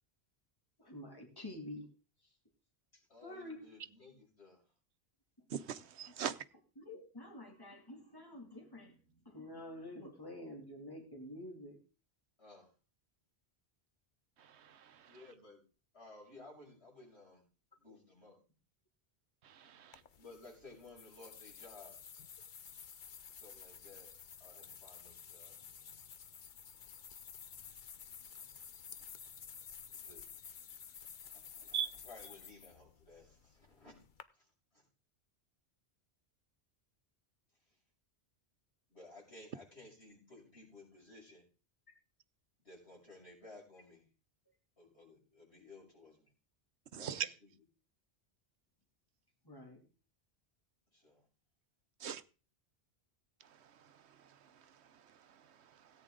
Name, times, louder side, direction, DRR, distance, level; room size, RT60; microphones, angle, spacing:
voice 1, 0.8-1.9 3.2-3.6 6.8-9.0 9.3-11.8 49.5-49.8, left 1 dB, 20° left, 2 dB, 2.5 m, -48 dB
voice 2, 3.1-4.6 12.4-12.7 15.1-15.6 15.9-17.4 17.8-18.4 20.2-22.0 23.3-24.1 24.4-25.6 29.9-30.2 31.3-31.8 32.0-33.9 34.4-34.5 34.7-34.8 38.9-41.4 42.6-44.0 44.8-46.3 47.0-47.5 50.9-51.2, left 2 dB, 75° left, -3 dB, 7.0 m, -56 dB
voice 3, 5.5-6.4 14.6-14.8 19.4-20.0 31.7-31.9 46.9-47.3 52.0-52.2, right 8 dB, 80° right, 14 dB, 1.1 m, -39 dB
sound 1, 19.9-34.2, left 7 dB, 50° left, 0.9 m, -52 dB
17.5 x 9.1 x 3.8 m, 0.35 s
omnidirectional pair, 1.1 m